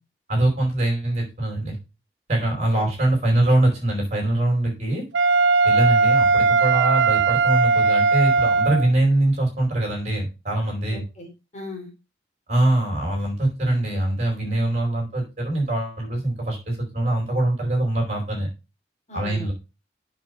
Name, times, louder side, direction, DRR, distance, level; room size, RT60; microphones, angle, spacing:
voice 1, 0.3-1.8 2.3-5.0 5.6-11.0 12.5-18.5 19.1-19.5, right 1 dB, 35° right, 0 dB, 4.7 m, -23 dB
voice 2, 2.4-3.1 10.9-11.9 19.1-19.5, left 2 dB, 40° left, 0 dB, 4.0 m, -39 dB
Wind instrument woodwind instrument, 5.1-8.9, right 4 dB, 80° right, 0.5 m, -18 dB
7.4 x 6.5 x 4.9 m, 0.27 s
head